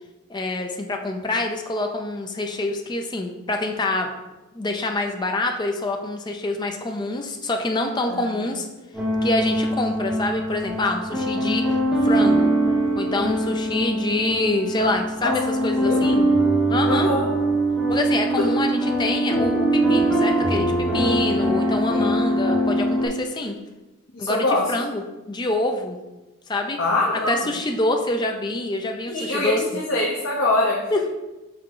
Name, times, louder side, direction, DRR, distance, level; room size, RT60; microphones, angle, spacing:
voice 1, 0.3-4.1 4.5-8.7 9.2-11.6 12.0-12.5 13.0-16.2 16.7-17.1 17.9-23.6 24.2-25.0 25.3-26.0 26.5-26.8 27.3-29.6 30.9-31.1, left 2 dB, 20° left, 3 dB, 0.4 m, -26 dB
voice 2, 8.1-8.6 15.2-15.3 15.8-16.3 16.9-17.3 21.9-22.1 24.1-24.6 26.8-27.5 29.1-30.8, left 2 dB, 60° left, -3 dB, 0.9 m, -24 dB
sound 1, 8.9-23.1, right 1 dB, ahead, 1.6 m, -22 dB
5.9 x 3.6 x 4.7 m, 1.1 s
head